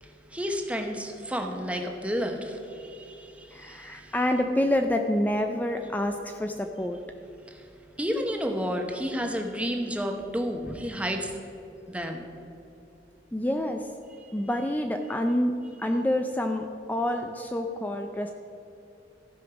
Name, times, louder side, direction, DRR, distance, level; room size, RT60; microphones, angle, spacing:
voice 1, 0.0-4.1 7.4-11.4 11.9-12.3 14.2-14.4, equal, 5° right, 3 dB, 0.9 m, -32 dB
voice 2, 3.5-7.0 13.3-13.9 14.3-18.3, left 1 dB, 10° left, 5 dB, 0.4 m, -27 dB
14.5 x 5.3 x 6.1 m, 2.8 s
head